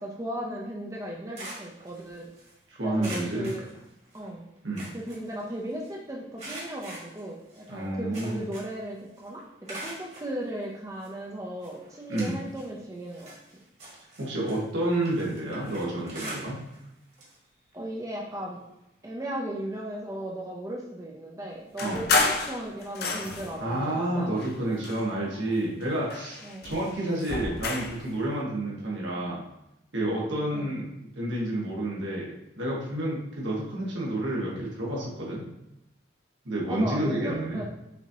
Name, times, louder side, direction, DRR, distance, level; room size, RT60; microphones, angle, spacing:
voice 1, 0.0-2.3 2.8-3.7 4.1-4.4 4.9-13.3 17.7-18.6 19.0-24.4 26.4-26.7 30.5-30.7 36.7-37.6, right 1 dB, 15° right, -2 dB, 0.5 m, -36 dB
sound 1, 1.0-2.5 3.0-4.3 4.6-5.9 6.4-8.9 9.2-10.3 11.0-11.1 11.6-12.7 13.0-16.9 17.1-17.4 17.7-17.8 19.0-19.1, right 1 dB, 35° right, 1.4 m, -43 dB
voice 2, 2.8-3.5 4.6-4.9 7.7-8.4 12.1-12.4 14.2-16.6 21.8-22.0 23.6-29.4 29.9-30.8 31.1-35.4 36.4-37.6, right 1 dB, 80° right, -4 dB, 1.5 m, -30 dB
sound 2, 21.8-23.6 24.3-25.5 25.8-28.0, left 3 dB, 55° left, 0.5 m, -30 dB
5.9 x 2.8 x 2.8 m, 0.87 s
head